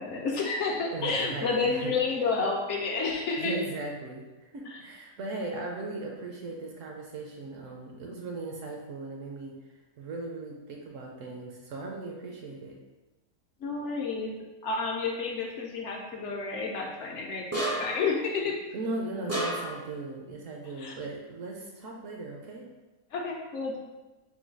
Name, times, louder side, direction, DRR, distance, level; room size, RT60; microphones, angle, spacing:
voice 1, 0.0-3.6 4.7-4.8 13.6-14.3 14.6-18.6 20.8-20.9 23.1-23.8, left 4 dB, 60° left, 0 dB, 0.8 m, -30 dB
voice 2, 0.9-1.9 3.4-9.6 10.0-12.7 18.7-22.7, right 3 dB, 65° right, -1 dB, 0.9 m, -38 dB
sound 1, 17.5-18.1 19.3-19.9, right 1 dB, 20° right, 0.4 m, -30 dB
3.9 x 2.2 x 4.5 m, 1.1 s
omnidirectional pair, 1.6 m